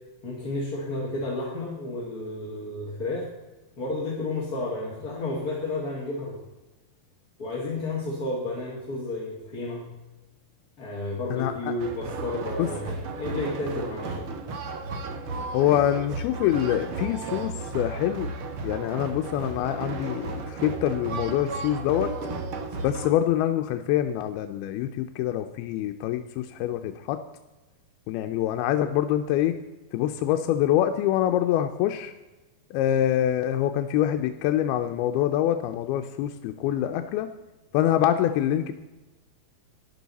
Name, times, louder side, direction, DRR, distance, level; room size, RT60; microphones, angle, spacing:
voice 1, 0.2-3.3 3.8-6.4 7.4-9.9 10.8-14.3, left 2 dB, 35° left, -3 dB, 1.6 m, -32 dB
voice 2, 11.3-11.7 12.6-12.7 15.5-18.3 18.6-22.1 22.8-27.2 28.1-29.6 29.9-32.1 32.7-37.3 37.7-38.7, left 11 dB, 90° left, 6 dB, 2.6 m, -25 dB
sound 1, 11.8-23.1, right 3 dB, 85° right, 1.2 m, -34 dB
13.0 x 11.0 x 4.1 m, 1.1 s
omnidirectional pair, 4.4 m